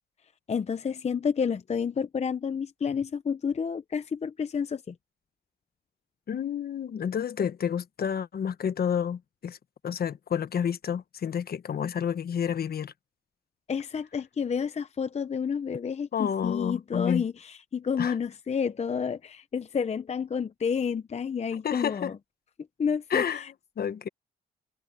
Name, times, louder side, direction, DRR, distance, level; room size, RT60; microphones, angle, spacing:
voice 1, 0.5-4.9 13.7-22.2 22.8-23.5, left 6 dB, 35° left, 0.7 m, -30 dB
voice 2, 6.3-9.6 9.8-12.9 16.1-17.2 18.0-18.1 21.6-22.1 23.1-23.4 23.8-24.1, left 8 dB, 50° left, 1.3 m, -29 dB
cardioid pair, 90°, 20 cm